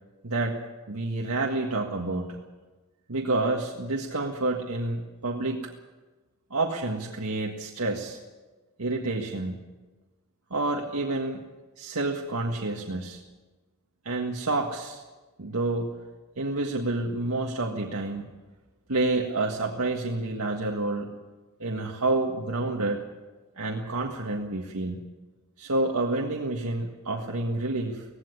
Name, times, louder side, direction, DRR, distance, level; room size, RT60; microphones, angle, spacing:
voice 1, 0.2-0.6 0.9-2.4 3.1-5.6 6.5-8.2 8.8-9.6 10.5-11.4 11.8-13.2 14.1-15.0 15.4-15.9 16.4-18.3 18.9-21.1 21.6-23.0 23.6-25.0 25.6-28.0, right 2 dB, 90° right, 0 dB, 1.7 m, -29 dB
18.0 x 16.5 x 9.6 m, 1.2 s
head